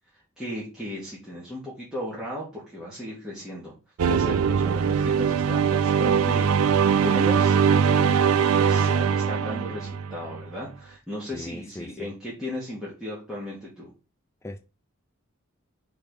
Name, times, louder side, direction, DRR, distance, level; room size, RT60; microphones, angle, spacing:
voice 1, 0.4-3.7 4.0-13.9, left 1 dB, 5° right, 2.0 m, -36 dB
sound 1, 4.0-10.4, right 7 dB, 85° right, 0.4 m, -21 dB
voice 2, 11.3-12.1 14.4-14.7, left 1 dB, 15° left, 0.4 m, -39 dB
4.9 x 4.6 x 5.3 m
head